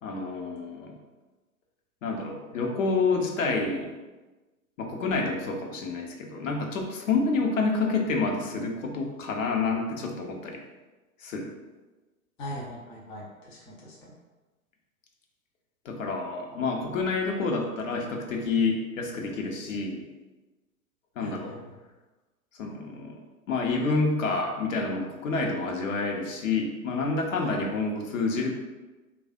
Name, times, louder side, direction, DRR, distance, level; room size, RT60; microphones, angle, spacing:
voice 1, 0.0-1.0 2.0-3.9 4.8-10.6 11.2-11.5 15.8-20.1 21.2-21.6 22.6-23.2 23.5-28.5, left 3 dB, 60° left, 1 dB, 0.8 m, -28 dB
voice 2, 12.4-14.1 21.2-21.7 27.4-27.5, equal, 10° left, -5 dB, 0.4 m, -41 dB
3.2 x 2.4 x 3.6 m, 1.2 s
figure-of-eight pair, 100°, 43 cm